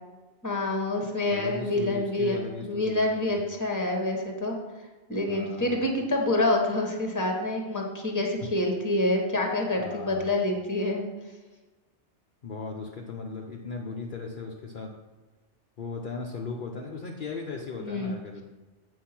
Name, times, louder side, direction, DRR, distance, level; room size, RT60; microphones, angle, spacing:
voice 1, 0.4-4.6 5.1-11.0 17.8-18.2, left 2 dB, 15° left, 1 dB, 1.3 m, -27 dB
voice 2, 1.3-3.4 5.3-5.8 9.8-10.3 12.4-14.9 15.8-18.4, left 4 dB, 50° left, 0 dB, 0.8 m, -37 dB
8.4 x 4.7 x 5.9 m, 1.2 s
omnidirectional pair, 1.2 m